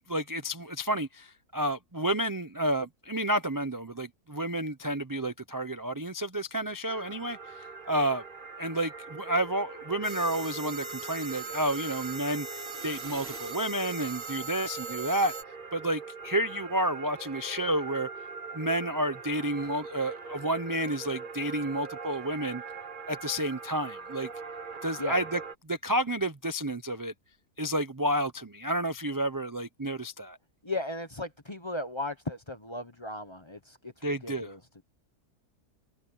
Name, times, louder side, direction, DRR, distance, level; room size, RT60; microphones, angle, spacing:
voice 1, 0.1-8.2 8.6-15.3 15.7-18.1 18.5-22.6 23.1-24.3 24.8-25.4 25.7-27.1 27.6-30.4 34.0-34.5, right 1 dB, 20° right, 0.5 m, -30 dB
sound 1, 6.9-25.5, right 5 dB, 35° right, 1.1 m, -43 dB
sound 2, 10.0-15.4, right 4 dB, 55° right, 3.1 m, -40 dB
voice 2, 30.6-34.8, left 2 dB, 20° left, 0.9 m, -36 dB
omnidirectional pair, 1.6 m